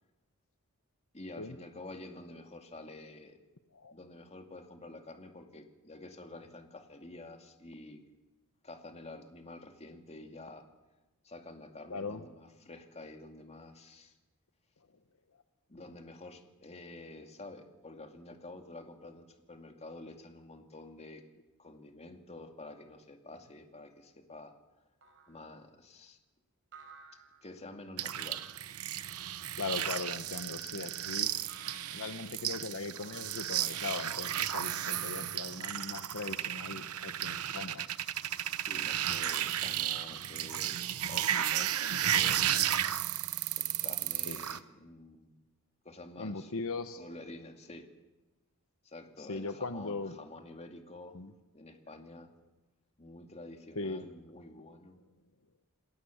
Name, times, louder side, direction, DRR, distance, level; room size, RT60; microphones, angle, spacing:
voice 1, 1.1-3.4 3.9-8.0 8.6-10.7 11.2-14.1 15.7-21.2 21.6-24.5 25.3-26.2 27.4-28.4 38.6-40.8 41.1-42.6 43.5-45.3 45.8-46.5 47.0-47.9 48.8-51.2 51.5-52.3 53.0-55.0, left 2 dB, 30° left, 5 dB, 2.4 m, -49 dB
voice 2, 11.9-12.2 29.6-31.3 31.9-37.9 44.3-44.4 46.2-47.0 49.2-50.2 51.1-51.3 53.7-54.0, left 3 dB, 65° left, 9 dB, 1.1 m, -39 dB
sound 1, 25.0-25.4 26.7-27.5 28.2-28.7 29.7-30.2 31.5-32.0 33.0-33.7, right 4 dB, 55° right, 5.5 m, -55 dB
sound 2, 28.0-44.6, right 11 dB, 75° right, 0.9 m, -34 dB
28.5 x 19.5 x 7.2 m, 1.1 s
head